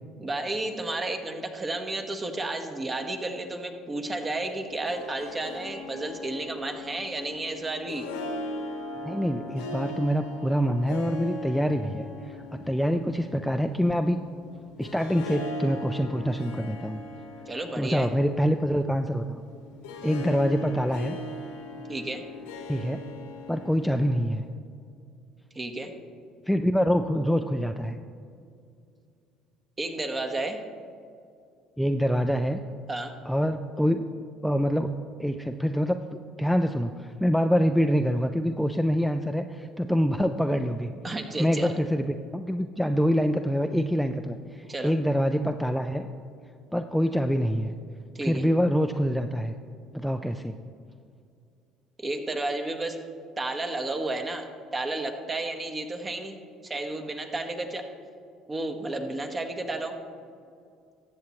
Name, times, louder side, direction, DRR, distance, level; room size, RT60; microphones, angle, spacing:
voice 1, 0.2-8.1 17.5-18.1 21.9-22.2 25.5-25.9 29.8-30.6 32.9-33.1 41.0-41.7 44.7-44.9 48.1-48.4 52.0-53.0 53.4-56.4 56.6-57.9 58.5-60.0, right 2 dB, 30° right, 6 dB, 1.2 m, -32 dB
Harp, 4.6-24.5, left 1 dB, 85° left, 1.1 m, -39 dB
voice 2, 9.0-14.2 14.8-17.0 17.8-19.4 20.0-21.2 22.7-23.0 23.5-24.4 26.5-28.0 31.8-32.6 33.3-34.1 34.4-34.9 35.2-40.9 41.4-46.1 46.7-47.7 48.2-49.5 49.9-50.5, equal, ahead, 6 dB, 0.4 m, -25 dB
14.0 x 7.3 x 3.1 m, 2.4 s
hypercardioid pair, 70°, 0 cm